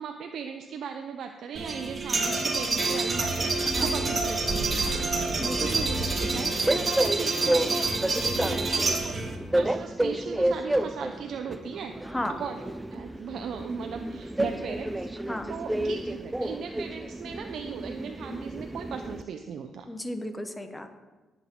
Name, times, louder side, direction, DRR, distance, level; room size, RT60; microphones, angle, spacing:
voice 1, 0.0-5.3 5.6-7.9 8.4-9.1 9.5-11.9 12.4-12.6 12.9-19.9, right 7 dB, 70° right, 5 dB, 0.7 m, -38 dB
sound 1, 1.6-9.4, right 3 dB, 30° right, 1.8 m, -27 dB
Train, 5.3-19.2, right 1 dB, 10° right, 0.5 m, -31 dB
voice 2, 5.4-5.8 8.1-9.0 12.0-12.3 15.3-15.5 19.9-20.9, left 1 dB, 10° left, 7 dB, 1.1 m, -35 dB
18.0 x 8.1 x 3.9 m, 1.2 s
cardioid pair, 90°, 0 cm